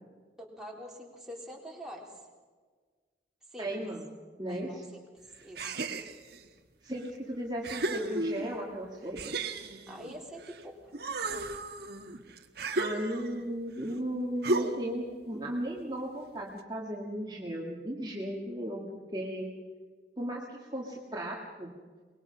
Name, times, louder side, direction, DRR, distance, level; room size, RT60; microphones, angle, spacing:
voice 1, 0.4-2.1 3.5-3.9 4.5-5.8 9.9-10.9, equal, 5° right, -3 dB, 3.8 m, -45 dB
voice 2, 3.6-4.1 4.4-4.8 6.8-9.4 12.7-18.8 19.1-19.6 20.2-21.7, right 1 dB, 25° right, -3 dB, 2.0 m, -36 dB
sound 1, 5.6-6.4 7.1-7.2 7.6-8.7 9.2-10.6 10.9-13.5 14.4-15.0, right 2 dB, 60° right, 1.5 m, -34 dB
24.0 x 21.0 x 5.8 m, 1.5 s
head